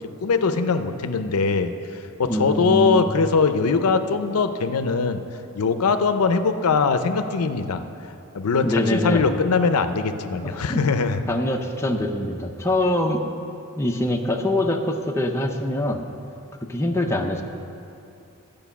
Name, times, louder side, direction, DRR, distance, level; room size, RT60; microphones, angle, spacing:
voice 1, 0.2-1.7 2.2-5.2 5.5-7.8 8.3-11.2, left 4 dB, 85° left, 9 dB, 0.5 m, -21 dB
voice 2, 2.2-3.1 8.6-9.3 10.4-10.8 11.3-13.2 13.8-16.0 16.7-17.4, left 1 dB, 10° left, 2 dB, 0.5 m, -24 dB
11.5 x 5.2 x 7.0 m, 2.6 s
head